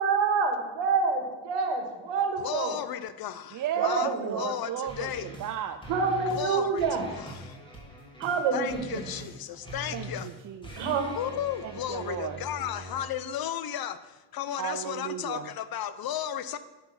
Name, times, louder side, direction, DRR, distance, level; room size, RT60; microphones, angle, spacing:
voice 1, 0.0-2.8 3.8-4.4 5.9-7.1 8.2-9.1 10.8-11.1, right 5 dB, 70° right, 5 dB, 1.8 m, -27 dB
voice 2, 2.4-3.5 3.8-4.7 5.0-5.3 6.3-6.8 7.1-7.2 8.5-10.3 11.2-14.0 14.3-16.6, left 10 dB, 55° left, 13 dB, 0.8 m, -34 dB
voice 3, 3.5-5.8 9.9-10.9 11.6-12.4 14.6-15.5, right 9 dB, 45° right, 7 dB, 0.6 m, -34 dB
sound 1, 4.9-5.5 5.8-6.5 6.8-13.1, equal, 10° left, 2.6 m, -43 dB
9.6 x 5.8 x 5.8 m, 1.1 s
supercardioid pair, 75°, 45 cm